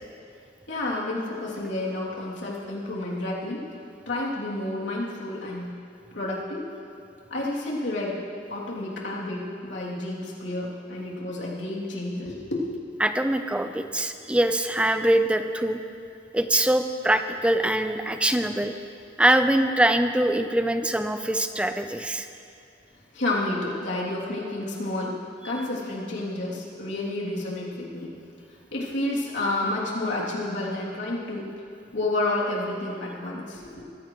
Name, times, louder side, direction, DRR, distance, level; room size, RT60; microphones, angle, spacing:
voice 1, 0.7-3.6 4.1-5.7 6.1-6.7 7.3-8.2 8.5-12.7 23.1-25.2 25.4-28.1 28.7-31.5 31.9-33.8, left 2 dB, 75° left, -5 dB, 2.8 m, -30 dB
voice 2, 13.0-15.8 16.3-18.7 19.2-22.3, right 1 dB, 5° right, 8 dB, 0.5 m, -23 dB
21.5 x 14.5 x 3.1 m, 2.6 s
head